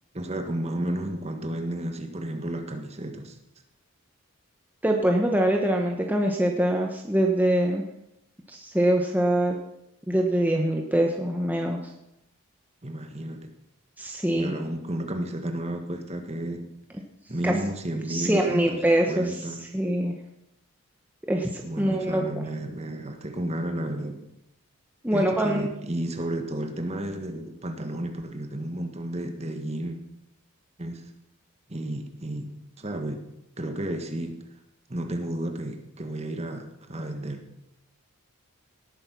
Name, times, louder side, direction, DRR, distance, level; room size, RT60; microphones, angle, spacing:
voice 1, 0.1-3.4 12.8-13.5 14.3-16.7 17.3-19.6 21.6-24.3 25.1-30.0 30.8-31.1 31.7-33.2 33.6-34.4 34.9-37.4, right 1 dB, 30° right, 5 dB, 1.6 m, -32 dB
voice 2, 4.8-7.8 8.5-9.6 10.1-11.8 14.0-14.5 17.4-17.5 18.1-19.4 19.7-20.1 21.2-22.2 25.0-25.6, right 1 dB, 10° right, 1 dB, 1.2 m, -24 dB
18.5 x 8.8 x 6.1 m, 0.84 s
head